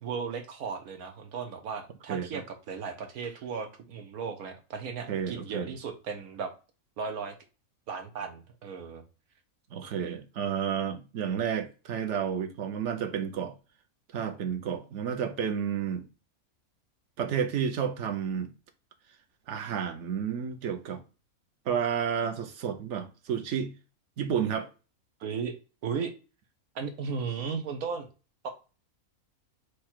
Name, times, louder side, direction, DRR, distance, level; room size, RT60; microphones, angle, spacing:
voice 1, 0.0-6.5 7.0-7.3 7.9-9.0 25.2-25.6 25.8-26.1 26.7-28.1 28.4-28.5, right 5 dB, 80° right, 1.4 m, -35 dB
voice 2, 2.1-2.4 5.1-5.7 9.7-13.5 14.1-16.1 17.2-18.5 19.5-21.0 21.7-23.7 24.2-24.7, right 7 dB, 60° right, 1.0 m, -31 dB
4.8 x 2.4 x 4.5 m
omnidirectional pair, 1.5 m